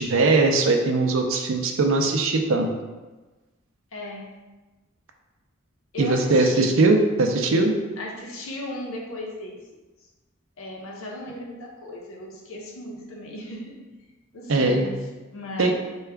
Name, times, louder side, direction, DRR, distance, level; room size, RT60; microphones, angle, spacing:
voice 1, 0.0-2.7 6.0-7.8 14.5-14.9 15.6-15.7, right 3 dB, 70° right, 4 dB, 0.5 m, -20 dB
voice 2, 3.9-4.4 5.9-6.8 8.0-9.6 10.6-13.8 14.3-15.0 15.3-15.8, left 1 dB, 75° left, 0 dB, 0.7 m, -36 dB
4.7 x 2.3 x 3.3 m, 1.2 s
head